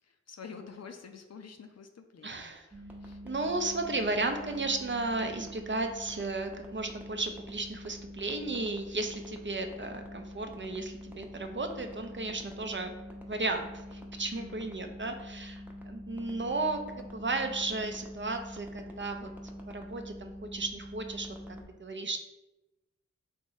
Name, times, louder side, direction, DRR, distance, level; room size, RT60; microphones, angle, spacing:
voice 1, 0.0-3.2 14.3-14.7, left 5 dB, 60° left, 6 dB, 0.5 m, -49 dB
voice 2, 2.2-2.7 3.2-12.9 13.3-19.3 19.7-22.2, right 2 dB, 40° right, 5 dB, 0.5 m, -34 dB
sound 1, 2.7-21.6, equal, 5° right, 0.7 m, -45 dB
3.6 x 2.9 x 4.0 m, 1.0 s
cardioid pair, 45°, 30 cm